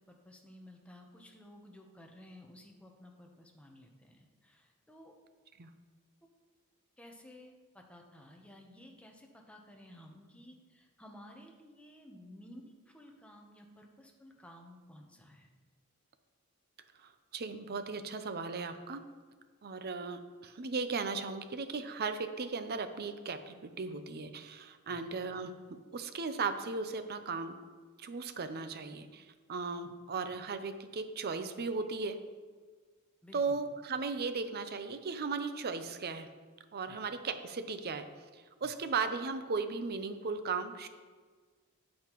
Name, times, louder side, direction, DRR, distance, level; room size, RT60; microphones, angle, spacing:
voice 1, 0.1-5.1 7.0-15.5 24.9-25.1 29.8-29.9 33.2-33.6 36.9-37.0 38.6-38.7, left 1 dB, 5° left, 1 dB, 0.9 m, -55 dB
voice 2, 17.0-19.0 19.6-25.5 25.9-27.6 28.0-32.2 33.3-36.3 36.7-38.1 38.3-40.9, right 4 dB, 45° right, 9 dB, 0.6 m, -37 dB
9.2 x 8.6 x 3.1 m, 1.5 s
head